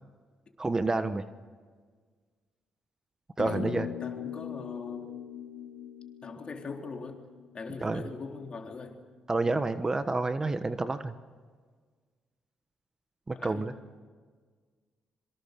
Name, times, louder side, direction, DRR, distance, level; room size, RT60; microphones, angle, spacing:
voice 1, 0.6-1.2 3.4-3.9 7.8-8.0 9.3-11.1 13.3-13.7, right 3 dB, 25° right, 10 dB, 1.2 m, -29 dB
sound 1, 3.4-8.0, left 9 dB, 80° left, 2.4 m, -40 dB
voice 2, 4.0-5.1 6.2-7.2 7.5-9.0 13.3-13.7, left 4 dB, 45° left, 3 dB, 3.8 m, -41 dB
26.0 x 24.0 x 6.8 m, 1.5 s
cardioid pair, 75°, 2 cm